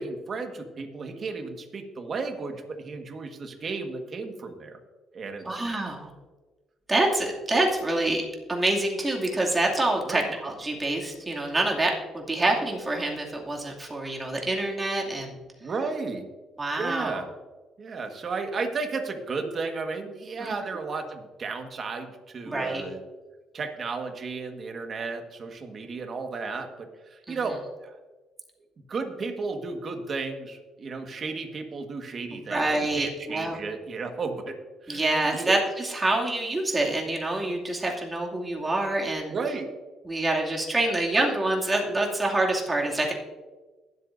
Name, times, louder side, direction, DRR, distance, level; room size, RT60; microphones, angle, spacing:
voice 1, 0.0-4.8 5.1-5.6 10.0-10.3 15.6-16.3 16.8-17.3 17.8-23.0 23.5-27.9 28.9-32.6 32.9-35.6 39.3-39.7, right 4 dB, 45° right, 5 dB, 1.6 m, -33 dB
voice 2, 5.4-6.1 6.9-8.2 8.5-15.4 16.6-17.2 20.4-20.5 22.5-22.8 27.3-27.4 32.5-33.6 34.9-39.3 40.0-43.1, right 2 dB, 20° right, -1 dB, 2.5 m, -26 dB
21.5 x 8.1 x 2.7 m, 1.2 s
cardioid pair, 85°, 0 cm